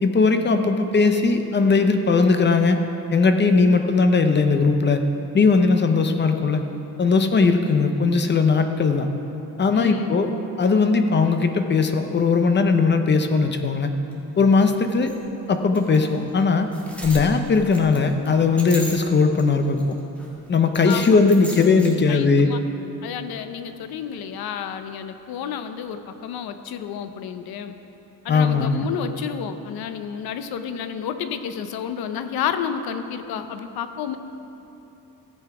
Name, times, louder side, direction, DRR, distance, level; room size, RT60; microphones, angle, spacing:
voice 1, 0.0-2.8 3.1-5.0 5.3-6.6 7.0-9.1 9.6-10.3 10.6-13.9 14.4-15.1 15.5-16.7 17.0-19.8 20.5-22.5 28.3-28.9, left 4 dB, 30° left, 7 dB, 0.7 m, -19 dB
voice 2, 9.7-10.2 20.8-21.2 22.1-22.6 23.0-27.7 28.2-34.2, left 8 dB, 90° left, 9 dB, 0.7 m, -30 dB
sound 1, 14.1-14.2 14.5-14.6 15.1-15.2 15.7-16.1 16.4-16.5 16.7-19.4 19.7-20.3 20.7-21.9, right 1 dB, 5° left, 1.7 m, -36 dB
14.5 x 7.9 x 4.8 m, 3.0 s
cardioid pair, 135°, 36 cm